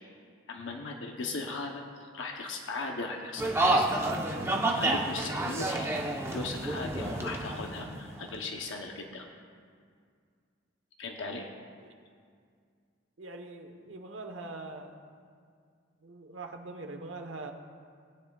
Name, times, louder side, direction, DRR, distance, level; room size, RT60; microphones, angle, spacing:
voice 1, 0.5-3.9 4.7-5.9 6.3-9.2 11.0-11.5, left 3 dB, 70° left, 2 dB, 0.8 m, -37 dB
sound 1, 3.4-8.4, right 2 dB, 15° right, 0.8 m, -29 dB
voice 2, 13.2-15.0 16.0-17.5, right 2 dB, 75° right, 5 dB, 1.0 m, -42 dB
19.5 x 9.8 x 2.3 m, 2.1 s
head